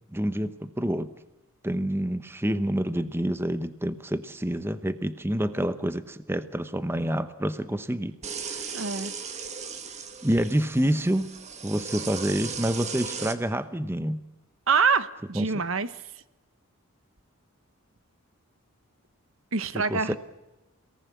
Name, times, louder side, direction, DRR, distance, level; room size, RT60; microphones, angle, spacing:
voice 1, 0.1-1.1 1.6-8.2 8.5-8.6 10.2-11.3 11.6-14.2 15.3-15.4 19.9-20.2, equal, 10° right, 12 dB, 0.9 m, -27 dB
sound 1, 8.2-13.3, right 6 dB, 30° right, 1.8 m, -37 dB
voice 2, 8.7-9.1 14.7-15.9 19.5-20.2, right 5 dB, 70° right, 14 dB, 1.2 m, -25 dB
29.0 x 18.5 x 8.5 m, 1.0 s
head